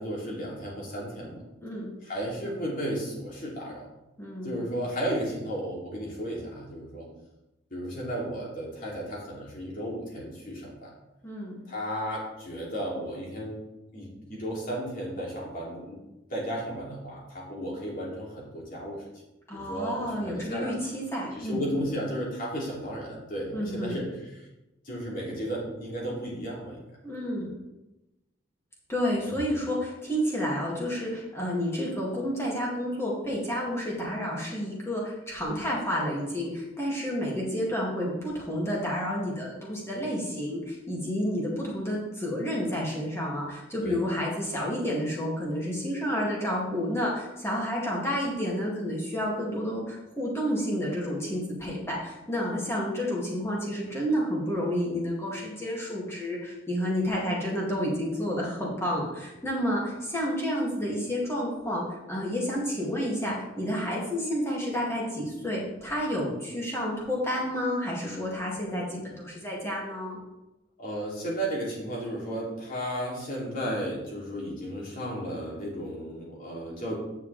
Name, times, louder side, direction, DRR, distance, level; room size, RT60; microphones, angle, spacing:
voice 1, 0.0-1.4 2.0-3.9 4.4-7.1 7.7-10.9 11.7-13.6 13.9-16.0 16.3-19.0 19.5-20.7 21.3-24.1 24.3-24.5 24.8-26.8 43.8-44.0 70.8-76.9, equal, 50° left, -4 dB, 3.0 m, -34 dB
voice 2, 1.6-2.0 4.2-4.6 11.2-11.6 19.5-21.7 23.5-24.0 27.0-27.5 28.9-70.2, equal, 15° left, -4 dB, 2.5 m, -30 dB
9.5 x 6.8 x 3.5 m, 0.96 s
head